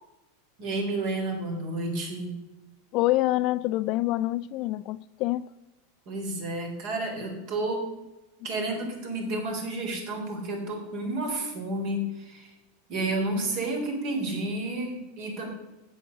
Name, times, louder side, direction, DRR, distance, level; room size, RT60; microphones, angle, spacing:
voice 1, 0.6-2.4 6.1-7.9 8.4-12.5 12.9-15.5, right 2 dB, 55° right, 3.6 m, -31 dB
voice 2, 2.9-5.5, left 16 dB, 50° left, 0.4 m, -26 dB
8.3 x 7.4 x 6.9 m
supercardioid pair, 125°, 0 cm